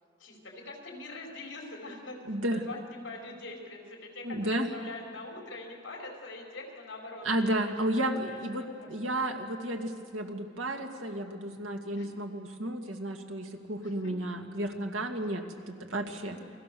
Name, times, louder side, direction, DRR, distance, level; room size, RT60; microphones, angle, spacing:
voice 1, 0.2-7.3 8.0-9.1 12.0-12.2 13.8-14.1 16.2-16.5, left 2 dB, 65° left, 0 dB, 4.8 m, -44 dB
voice 2, 2.3-2.6 4.2-4.7 7.2-16.4, right 1 dB, 80° right, 3 dB, 2.2 m, -32 dB
29.0 x 22.0 x 6.9 m, 2.2 s
head